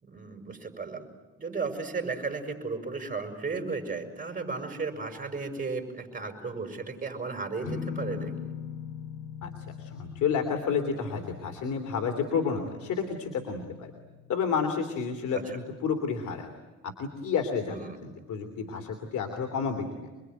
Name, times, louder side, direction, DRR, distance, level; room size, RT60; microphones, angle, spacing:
voice 1, 0.0-1.1 1.4-8.5 15.3-15.6 17.7-18.0, right 4 dB, 30° right, 5 dB, 6.2 m, -35 dB
sound 1, 7.6-15.2, left 8 dB, 90° left, 1.0 m, -42 dB
voice 2, 9.8-13.9 14.3-16.5 17.0-20.1, left 6 dB, 75° left, 5 dB, 3.0 m, -30 dB
27.0 x 22.0 x 9.2 m, 1.2 s
cardioid pair, 90°, 30 cm